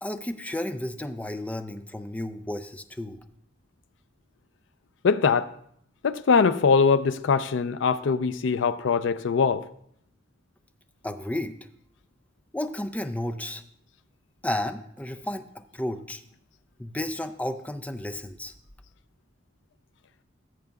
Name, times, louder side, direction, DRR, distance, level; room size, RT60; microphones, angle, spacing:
voice 1, 0.0-3.2 11.0-11.6 12.5-13.6 14.4-16.2 16.8-18.5, left 1 dB, 10° left, 0.5 m, -32 dB
voice 2, 5.0-5.5 6.0-9.7, left 5 dB, 80° left, 0.4 m, -22 dB
16.0 x 7.5 x 2.3 m
head